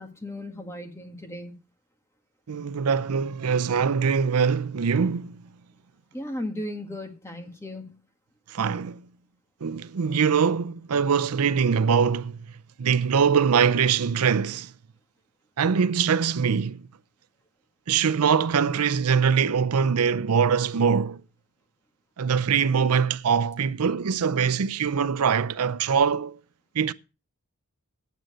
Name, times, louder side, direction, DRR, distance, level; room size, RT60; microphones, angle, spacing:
voice 1, 0.0-1.6 6.1-8.0, left 1 dB, 10° left, 1.8 m, -36 dB
voice 2, 2.5-5.4 8.5-9.0 9.6-12.4 12.8-14.7 15.6-16.8 17.9-21.2 22.2-26.4 26.8-26.9, right 6 dB, 85° right, 0.5 m, -23 dB
9.1 x 9.1 x 6.3 m
head